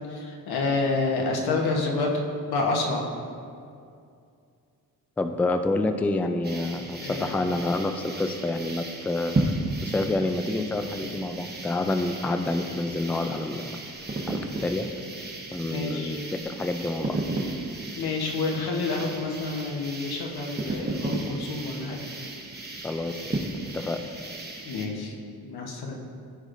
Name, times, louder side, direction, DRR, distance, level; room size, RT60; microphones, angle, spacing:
voice 1, 0.0-2.1 2.5-3.1 7.0-7.3 15.6-16.2 18.0-22.1 24.6-25.1 25.4-25.9, left 3 dB, 85° left, 0 dB, 1.2 m, -28 dB
voice 2, 5.2-9.6 9.8-13.8 14.3-14.9 15.5-16.2 16.4-17.2 22.8-23.4 23.7-24.0, left 2 dB, 5° left, 6 dB, 0.3 m, -28 dB
sound 1, 6.4-24.9, right 2 dB, 25° right, 1.0 m, -34 dB
14.0 x 4.9 x 2.6 m, 2.4 s
cardioid pair, 110°, 37 cm